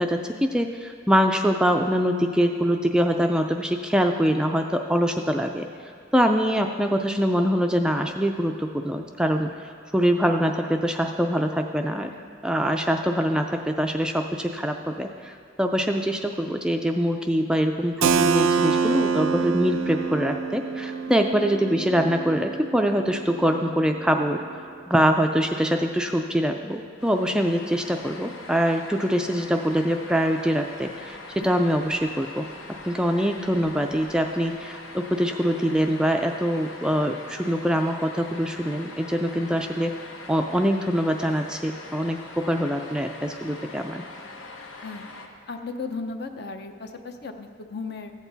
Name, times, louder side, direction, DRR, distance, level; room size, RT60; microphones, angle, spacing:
voice 1, 0.0-5.7 6.1-9.5 9.9-12.1 12.4-24.4 24.9-32.5 32.9-39.9 40.3-44.0, equal, 5° right, 4 dB, 0.3 m, -24 dB
Keyboard (musical), 18.0-23.6, right 5 dB, 85° right, 0.4 m, -26 dB
sound 1, 27.0-45.3, left 2 dB, 75° left, 1.0 m, -42 dB
voice 2, 44.8-45.2 45.5-48.1, left 4 dB, 50° left, 6 dB, 0.6 m, -36 dB
14.5 x 8.2 x 4.0 m, 2.2 s
head